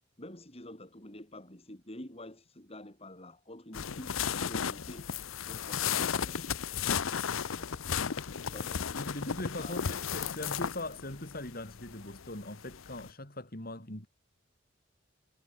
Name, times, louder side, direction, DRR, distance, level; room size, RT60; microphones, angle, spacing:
voice 1, 0.2-5.1 5.4-6.7 7.4-9.1 9.5-9.9, left 1 dB, 30° left, 5.0 m, -48 dB
sound 1, 3.7-13.1, left 7 dB, 85° left, 0.7 m, -34 dB
voice 2, 9.0-14.1, left 1 dB, 45° left, 4.8 m, -40 dB
head